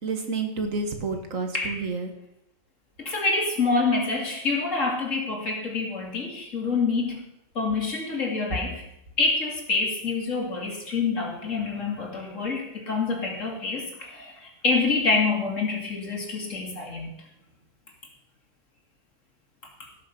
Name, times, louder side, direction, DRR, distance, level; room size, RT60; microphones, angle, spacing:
voice 1, 0.0-2.1, right 4 dB, 75° right, 5 dB, 2.0 m, -29 dB
voice 2, 3.0-7.2 7.6-8.8 9.2-14.3 14.6-17.1, left 4 dB, 70° left, 0 dB, 2.9 m, -26 dB
17.0 x 6.6 x 5.4 m, 0.82 s
omnidirectional pair, 1.4 m